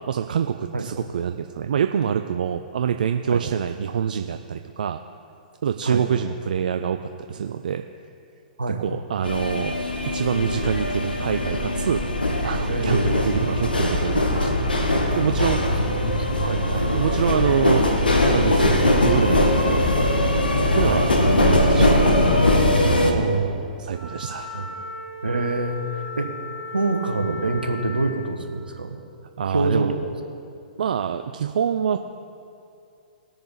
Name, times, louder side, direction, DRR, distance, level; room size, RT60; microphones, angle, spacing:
voice 1, 0.0-5.0 5.6-7.8 8.7-9.8 10.1-12.0 12.4-14.7 15.2-15.6 16.7-17.9 18.3-20.1 20.7-22.3 23.8-24.6 29.4-30.0 30.8-32.0, right 8 dB, 65° right, 7 dB, 0.4 m, -25 dB
sound 1, 9.2-23.1, left 1 dB, 85° left, 1.2 m, -21 dB
voice 2, 12.7-13.1 15.4-15.6 15.9-16.6 20.8-21.0 23.0-23.6 24.5-24.7 25.2-26.3 26.7-29.0 29.5-30.0, right 3 dB, 85° right, 4 dB, 1.2 m, -25 dB
Wind instrument woodwind instrument, 23.9-28.2, left 2 dB, 20° left, 3.2 m, -36 dB
19.5 x 6.8 x 4.0 m, 2.5 s
figure-of-eight pair, 115°, 5 cm